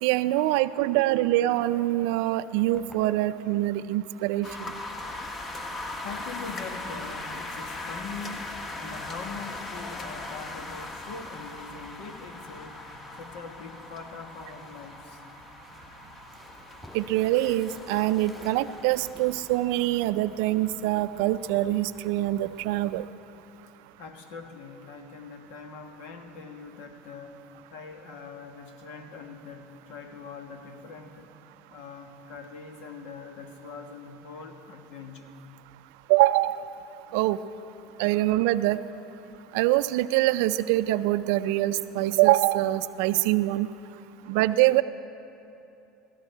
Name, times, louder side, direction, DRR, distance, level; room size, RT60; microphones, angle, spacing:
voice 1, 0.0-4.7 16.9-23.1 36.1-36.6 37.1-37.4 38.0-38.8 39.5-43.7 44.3-44.8, right 16 dB, 75° right, 14 dB, 0.4 m, -24 dB
sound 1, 2.3-3.5 4.0-9.4 9.7-14.4 15.4-20.9, left 1 dB, 15° left, 4.0 m, -56 dB
sound 2, 4.4-23.0, left 2 dB, 35° left, 1.4 m, -40 dB
voice 2, 6.0-8.5 8.8-12.8 13.2-15.2 24.0-27.4 27.7-31.3 31.7-35.3, left 4 dB, 70° left, 5 dB, 1.3 m, -42 dB
16.5 x 13.5 x 4.5 m, 2.8 s
hypercardioid pair, 85°, 0 cm